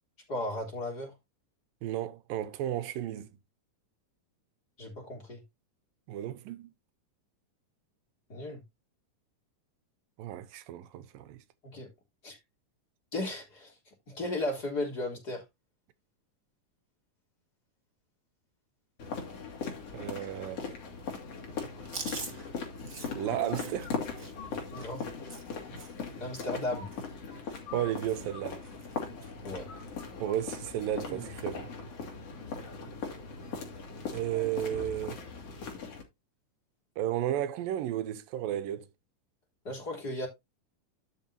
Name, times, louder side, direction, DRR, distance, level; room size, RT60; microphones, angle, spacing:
voice 1, 0.3-1.1 4.8-5.4 8.3-8.6 11.7-11.9 12.2-12.4 13.1-15.4 24.7-25.1 26.2-26.9 29.4-29.7 39.6-40.3, left 1 dB, 30° left, 3.9 m, -35 dB
voice 2, 1.8-3.3 6.1-6.7 10.2-11.4 19.9-20.8 23.1-24.0 27.7-28.6 30.2-31.7 34.1-35.2 37.0-38.9, right 12 dB, 85° right, 2.6 m, -33 dB
sound 1, 19.0-36.0, left 5 dB, 50° left, 3.4 m, -39 dB
Chewing mastication, 21.8-26.1 26.3-26.6 26.9-27.8 28.1-28.4 28.6-29.3 29.7-29.9 30.9-31.3, right 4 dB, 30° right, 1.8 m, -45 dB
12.0 x 6.8 x 2.8 m
omnidirectional pair, 3.9 m